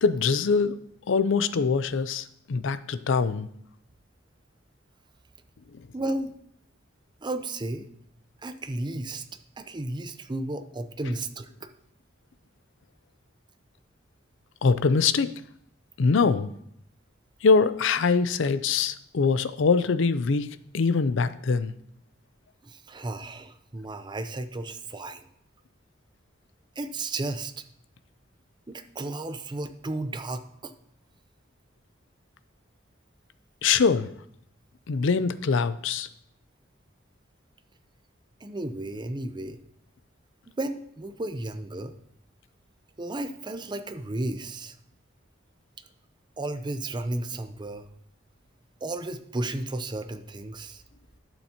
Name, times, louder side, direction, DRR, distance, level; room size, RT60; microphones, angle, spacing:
voice 1, 0.0-0.8 1.1-3.5 14.6-15.3 16.0-16.5 17.4-20.5 20.7-21.7 33.6-34.1 34.9-36.1, left 5 dB, 70° left, 14 dB, 0.5 m, -23 dB
voice 2, 5.9-6.3 7.2-7.9 8.4-9.2 9.6-11.7 22.6-25.3 26.8-27.5 28.7-30.7 38.4-39.6 40.5-41.9 43.0-44.7 46.4-47.9 48.8-50.8, right 2 dB, 25° right, 9 dB, 0.6 m, -33 dB
11.5 x 7.1 x 2.9 m, 0.71 s
head